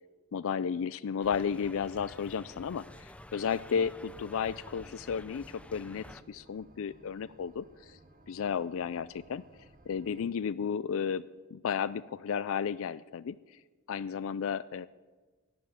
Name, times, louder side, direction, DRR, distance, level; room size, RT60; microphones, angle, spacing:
voice 1, 0.3-8.0 8.3-9.4 9.9-11.2 11.5-13.4 13.9-14.9, left 6 dB, 65° left, 16 dB, 0.4 m, -33 dB
sound 1, 1.2-6.2, left 1 dB, 5° left, 0.5 m, -50 dB
sound 2, 3.5-10.3, right 1 dB, 40° right, 1.2 m, -59 dB
12.0 x 11.5 x 9.6 m, 1.3 s
head